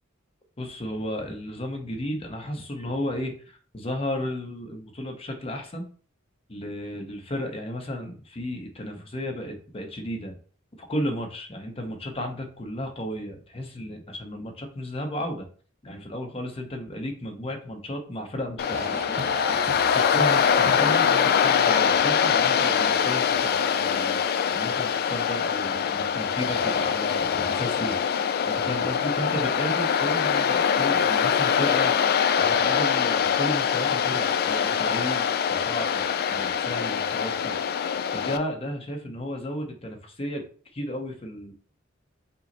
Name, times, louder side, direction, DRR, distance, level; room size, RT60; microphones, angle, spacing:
voice 1, 0.6-5.9 6.5-10.4 10.8-15.5 15.8-19.0 19.8-28.0 28.5-32.0 32.3-37.5 38.1-40.4 40.7-41.5, equal, 30° left, 3 dB, 0.8 m, -33 dB
Waves surf, 18.6-38.4, left 7 dB, 50° left, 0.3 m, -23 dB
sound 1, 18.7-24.0, right 3 dB, 30° right, 0.5 m, -40 dB
5.5 x 2.1 x 3.9 m, 0.43 s
head